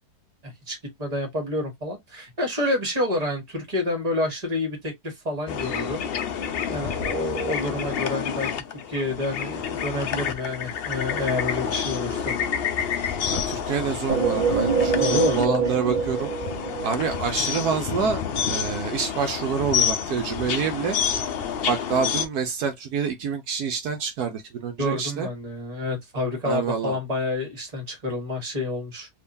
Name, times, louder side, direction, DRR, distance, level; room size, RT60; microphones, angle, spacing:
voice 1, 0.4-6.0 6.7-12.4 15.0-15.8 24.8-29.1, left 1 dB, 25° right, 1.6 m, -28 dB
sound 1, 5.5-22.3, left 7 dB, 65° left, 0.5 m, -29 dB
voice 2, 13.3-16.3 16.8-18.2 18.5-21.0 21.6-25.3 26.4-27.0, right 6 dB, 75° right, 1.2 m, -27 dB
sound 2, 14.1-17.7, right 5 dB, 45° right, 0.7 m, -25 dB
3.6 x 3.0 x 2.6 m
omnidirectional pair, 1.7 m